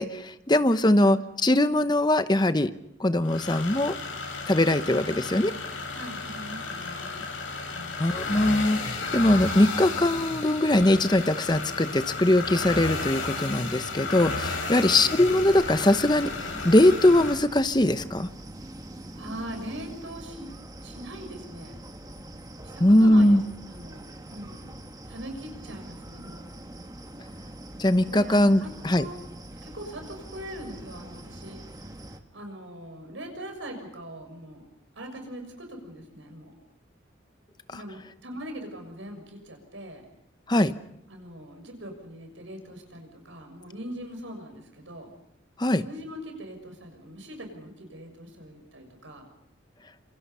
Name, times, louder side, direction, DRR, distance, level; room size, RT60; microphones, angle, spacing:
voice 1, 0.0-2.7 3.0-3.9 4.5-5.5 8.0-18.3 22.8-23.4 27.8-29.0 37.7-37.8 40.5-40.7 45.6-45.8, left 1 dB, 20° left, 11 dB, 0.9 m, -21 dB
sound 1, 3.2-17.3, left 3 dB, 90° left, 7.0 m, -33 dB
voice 2, 4.9-5.4 5.9-7.2 7.7-8.0 14.7-15.0 19.1-20.5 20.8-21.7 22.7-24.7 25.1-26.4 28.0-28.7 29.0-29.2 29.6-31.9 32.3-34.6 34.9-36.5 37.7-40.0 41.1-45.1 45.8-49.2, equal, 80° right, 4 dB, 6.4 m, -41 dB
sound 2, 15.3-32.2, right 1 dB, 20° right, 1.4 m, -43 dB
27.0 x 26.0 x 5.6 m, 0.76 s
head